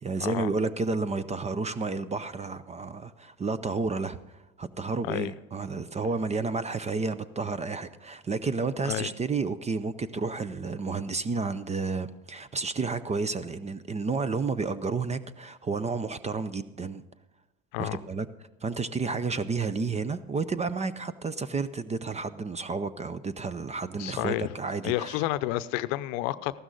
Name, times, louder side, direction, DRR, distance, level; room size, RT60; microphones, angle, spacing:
voice 1, 0.0-17.0 17.8-18.3 18.6-25.2, right 4 dB, 15° right, 15 dB, 0.5 m, -31 dB
voice 2, 24.0-24.5 24.8-26.6, left 16 dB, 70° left, 15 dB, 0.7 m, -30 dB
14.5 x 12.5 x 3.9 m, 1.1 s
hypercardioid pair, 90°, 40 cm